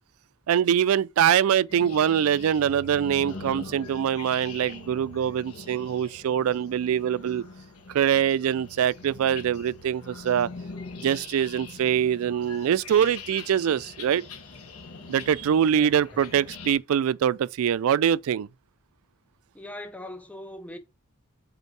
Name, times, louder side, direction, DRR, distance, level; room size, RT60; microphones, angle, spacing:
voice 1, 0.5-7.4 7.9-10.5 11.0-14.2 15.1-18.5, right 9 dB, 75° right, 0.3 m, -24 dB
sound 1, 1.7-16.7, left 3 dB, 85° left, 1.3 m, -43 dB
voice 2, 15.7-16.2 19.5-20.8, left 1 dB, 5° left, 0.6 m, -41 dB
5.4 x 4.4 x 4.6 m
head